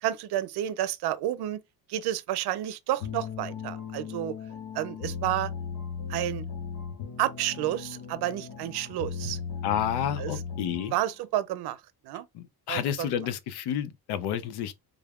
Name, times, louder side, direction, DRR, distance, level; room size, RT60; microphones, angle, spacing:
voice 1, 0.0-1.6 1.9-4.4 4.7-5.5 6.1-6.4 7.2-9.4 10.2-10.3 10.9-11.8 12.0-12.3 12.7-13.3, right 13 dB, 80° right, 0.6 m, -30 dB
sound 1, 3.0-11.1, left 6 dB, 65° left, 1.3 m, -37 dB
voice 2, 9.6-10.9 12.3-14.8, left 9 dB, 90° left, 0.7 m, -30 dB
3.5 x 2.4 x 3.5 m
cardioid pair, 180°, 38 cm